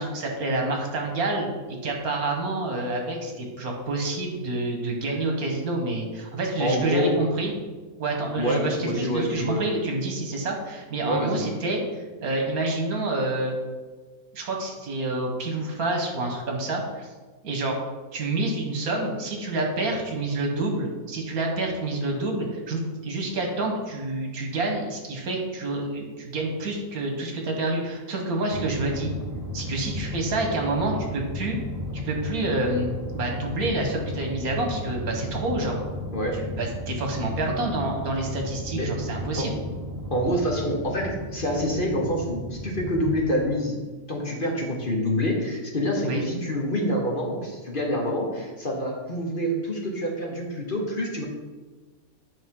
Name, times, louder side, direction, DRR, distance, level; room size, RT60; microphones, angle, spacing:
voice 1, 0.0-1.5 1.8-7.5 8.0-13.5 14.3-17.1 17.4-17.8 18.1-29.1 29.5-31.6 31.9-35.8 36.4-39.6 46.0-46.2, right 2 dB, 75° right, 1 dB, 1.7 m, -28 dB
voice 2, 6.6-7.1 8.4-9.6 11.1-11.4 36.1-36.4 38.7-38.9 39.4-39.5 40.1-43.8 44.1-51.2, equal, 40° left, -1 dB, 1.2 m, -26 dB
sound 1, 28.5-43.2, left 1 dB, 20° right, 0.5 m, -34 dB
9.0 x 5.2 x 3.7 m, 1.3 s
omnidirectional pair, 1.5 m